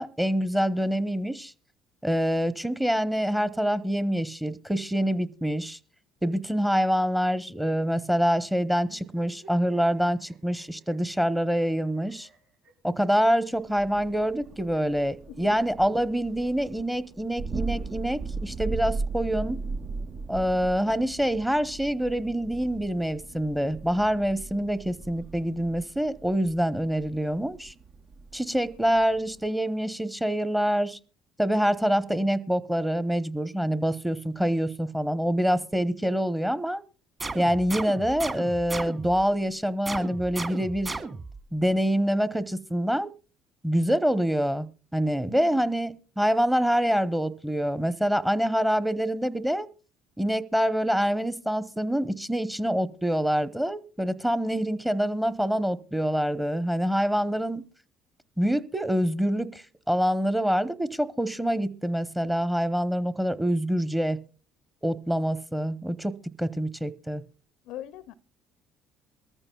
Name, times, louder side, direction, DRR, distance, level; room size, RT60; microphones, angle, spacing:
voice 1, 0.0-1.5 2.0-5.8 6.2-12.3 12.8-19.6 20.3-27.7 28.3-31.0 31.4-36.8 37.3-41.0 41.5-43.1 43.6-49.7 50.2-57.6 58.4-64.2 64.8-67.2, equal, 5° right, 0.9 m, -26 dB
sound 1, 8.8-15.0 16.0-17.1, right 3 dB, 80° right, 6.5 m, -58 dB
Thunder, 13.7-29.5, right 3 dB, 45° right, 0.6 m, -38 dB
voice 2, 15.3-15.6 45.3-45.6 67.7-68.1, left 12 dB, 70° left, 0.5 m, -41 dB
sound 2, 37.2-39.3 39.9-41.4, right 3 dB, 30° right, 2.1 m, -35 dB
23.0 x 14.5 x 2.3 m
hypercardioid pair, 60°, 0 cm